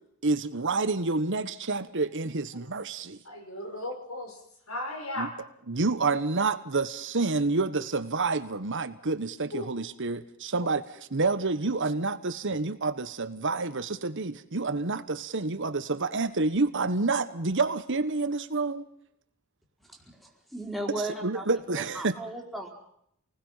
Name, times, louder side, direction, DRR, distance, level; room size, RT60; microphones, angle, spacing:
voice 1, 0.2-3.2 5.2-5.3 5.7-18.9 20.9-22.1, right 3 dB, 60° right, 1.3 m, -28 dB
voice 2, 3.2-4.4 4.7-5.3 9.5-9.6, left 1 dB, 70° left, 6.0 m, -35 dB
voice 3, 20.2-21.5 21.8-22.7, right 1 dB, ahead, 4.4 m, -36 dB
28.5 x 20.0 x 5.7 m
head